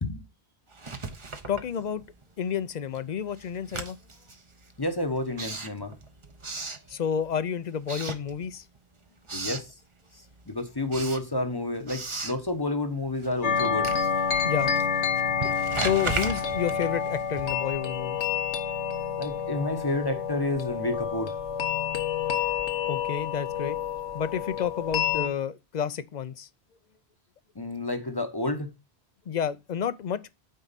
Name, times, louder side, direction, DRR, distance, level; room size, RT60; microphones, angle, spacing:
Writing, 0.7-2.3 2.6-7.4 7.8-8.8 9.1-9.7 10.2-17.8, right 3 dB, 30° right, 0.8 m, -38 dB
voice 1, 1.5-2.0 2.4-4.0 6.9-8.7 14.4-14.7 15.8-18.2 22.9-23.8 24.1-26.5 29.3-30.3, left 8 dB, 50° left, 0.5 m, -30 dB
voice 2, 4.8-5.9 9.3-9.7 10.5-13.9 19.2-21.4 27.6-28.7, left 2 dB, 25° left, 0.8 m, -30 dB
sound 1, 13.4-25.3, left 7 dB, 85° left, 1.3 m, -28 dB
9.0 x 4.7 x 4.0 m
omnidirectional pair, 1.1 m